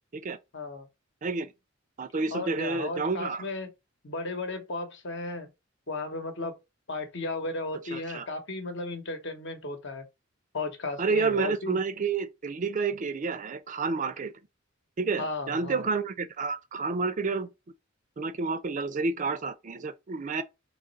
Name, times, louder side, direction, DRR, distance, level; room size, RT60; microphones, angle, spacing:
voice 1, 0.5-0.9 2.3-3.7 4.0-5.5 5.9-6.6 6.9-10.0 10.5-11.8 15.2-15.9, left 2 dB, 60° left, 1.0 m, -35 dB
voice 2, 1.2-1.5 2.0-3.4 7.9-8.3 11.0-14.3 15.0-17.5 18.2-20.4, right 4 dB, 40° right, 0.4 m, -30 dB
3.8 x 3.0 x 4.0 m
head